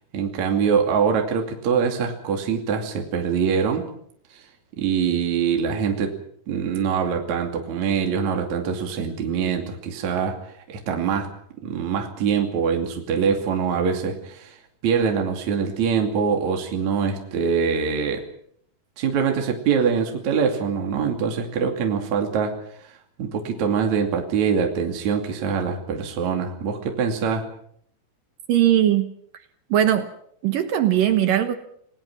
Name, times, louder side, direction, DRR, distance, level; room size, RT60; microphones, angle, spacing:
voice 1, 0.1-3.9 4.3-4.4 4.8-6.1 6.5-10.4 10.7-11.3 11.6-14.6 14.8-18.2 19.0-22.5 22.8-22.9 23.2-27.5, right 6 dB, 45° right, 3 dB, 3.4 m, -24 dB
voice 2, 28.5-29.1 29.7-30.1 30.4-31.6, right 11 dB, 65° right, 9 dB, 2.4 m, -19 dB
29.5 x 18.5 x 6.1 m, 0.65 s
omnidirectional pair, 5.1 m